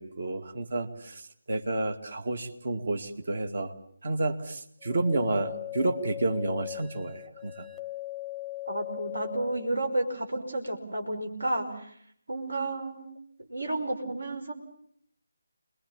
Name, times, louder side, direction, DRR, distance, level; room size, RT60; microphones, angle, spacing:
voice 1, 0.0-3.7 4.0-7.7, right 2 dB, 50° right, 7 dB, 2.2 m, -30 dB
sound 1, 4.8-9.7, left 18 dB, 5° left, 1.0 m, -39 dB
voice 2, 8.7-11.9 12.3-13.1 13.5-14.5, right 2 dB, 70° right, 5 dB, 5.4 m, -31 dB
28.5 x 21.5 x 7.3 m, 0.65 s
figure-of-eight pair, 150°, 0 cm